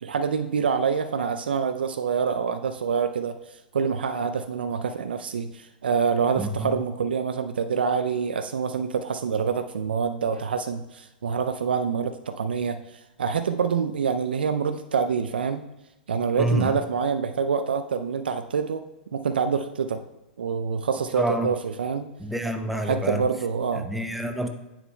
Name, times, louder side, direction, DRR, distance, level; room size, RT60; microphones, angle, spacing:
voice 1, 0.0-15.6 16.1-18.8 19.1-20.0 20.4-22.1 22.8-23.9, right 6 dB, 80° right, 9 dB, 0.4 m, -26 dB
voice 2, 16.4-16.7 21.2-21.5 22.2-23.2 23.9-24.5, equal, 5° right, 5 dB, 0.7 m, -27 dB
8.7 x 7.1 x 2.2 m, 0.94 s
hypercardioid pair, 110°, 5 cm